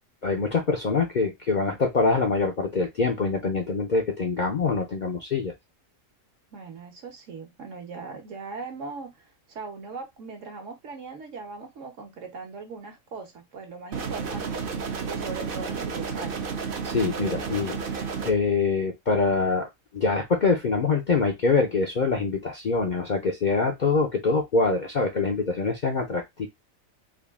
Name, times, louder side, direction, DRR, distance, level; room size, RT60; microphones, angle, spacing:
voice 1, 0.2-5.5 16.8-26.5, left 4 dB, 50° left, 2 dB, 0.6 m, -25 dB
voice 2, 6.5-9.2 9.5-14.6 15.0-16.4, right 4 dB, 65° right, 3 dB, 1.3 m, -39 dB
sound 1, 13.9-18.3, right 5 dB, 50° right, 0.7 m, -31 dB
3.6 x 2.3 x 3.5 m, 0.18 s
omnidirectional pair, 1.4 m